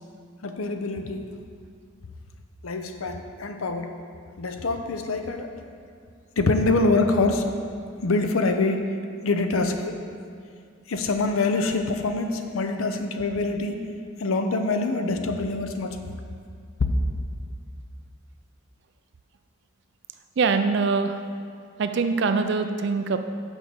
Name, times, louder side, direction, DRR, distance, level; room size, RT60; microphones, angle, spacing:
voice 1, 0.4-1.2 2.6-3.9 4.4-5.5 6.4-7.4 8.0-8.9 9.2-9.9 10.9-13.8 14.2-16.2, left 3 dB, 75° left, 6 dB, 0.6 m, -25 dB
voice 2, 20.4-21.2 21.8-23.2, right 4 dB, 55° right, 8 dB, 0.3 m, -23 dB
6.2 x 5.0 x 6.8 m, 2.2 s
head